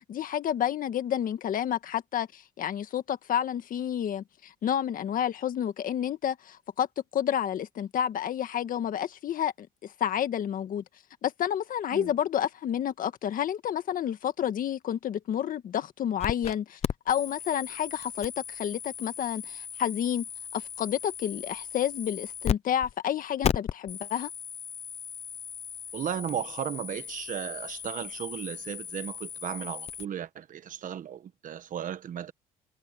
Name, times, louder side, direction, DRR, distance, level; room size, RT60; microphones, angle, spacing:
voice 1, 0.0-6.9 7.1-10.8 11.2-16.8 17.0-20.2 20.5-24.3, left 10 dB, 55° left, 1.7 m, -30 dB
sound 1, 16.2-16.5 16.8-22.6 22.8-22.9 23.4-30.0, left 9 dB, 40° left, 0.6 m, -36 dB
voice 2, 25.9-32.3, right 9 dB, 50° right, 1.3 m, -35 dB
cardioid pair, 110°, 17 cm